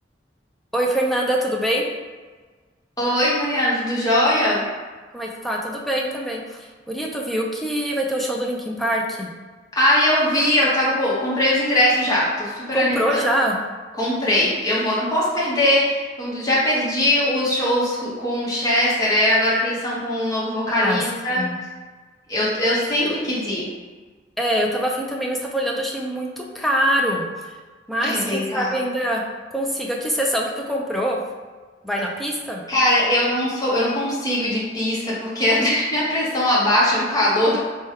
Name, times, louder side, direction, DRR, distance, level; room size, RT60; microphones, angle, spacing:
voice 1, 0.7-1.9 5.1-9.3 12.7-13.6 20.8-21.0 21.3-21.6 23.0-23.1 24.4-27.5 27.9-29.2 29.5-31.2 31.8-32.6, equal, ahead, -1 dB, 0.4 m, -24 dB
voice 2, 3.0-4.6 9.8-13.0 14.0-21.5 22.3-23.7 28.0-28.7 32.7-37.6, left 1 dB, 20° left, -7 dB, 1.0 m, -21 dB
3.2 x 2.3 x 4.3 m, 1.4 s
head